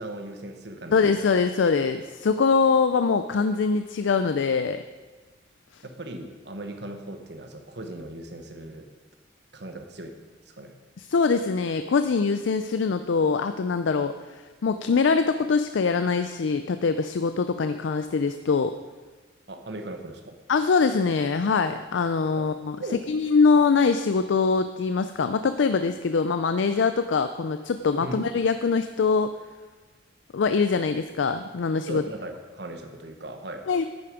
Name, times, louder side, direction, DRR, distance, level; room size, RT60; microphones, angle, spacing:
voice 1, 0.0-1.3 5.8-8.9 9.5-10.2 10.4-10.7 19.5-20.4 22.4-22.5 22.8-23.1 28.0-28.3 31.9-33.7, right 1 dB, 60° right, 5 dB, 1.2 m, -38 dB
voice 2, 0.9-4.8 11.0-18.7 20.5-22.8 23.1-29.3 30.3-32.0 33.7-33.8, left 4 dB, 75° left, 10 dB, 0.4 m, -23 dB
10.5 x 8.7 x 5.0 m, 1.3 s
head